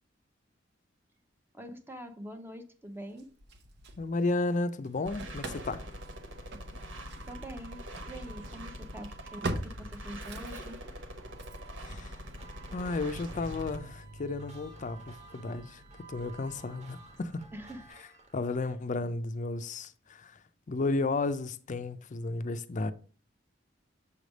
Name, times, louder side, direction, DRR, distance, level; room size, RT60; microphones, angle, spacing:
voice 1, 1.5-3.3 7.3-10.8 17.5-17.8, equal, 10° right, 0.8 m, -44 dB
Engine starting / Slam, 3.2-4.6 4.8-17.9, right 2 dB, 60° right, 0.8 m, -45 dB
voice 2, 4.0-5.8 11.9-12.1 12.7-15.8 16.1-17.4 18.3-20.4 20.7-22.9, left 3 dB, 40° left, 0.5 m, -33 dB
sound 1, 5.1-13.8, equal, 80° right, 1.1 m, -44 dB
sound 2, 12.2-18.8, right 2 dB, 40° right, 1.4 m, -56 dB
7.1 x 3.3 x 5.1 m
head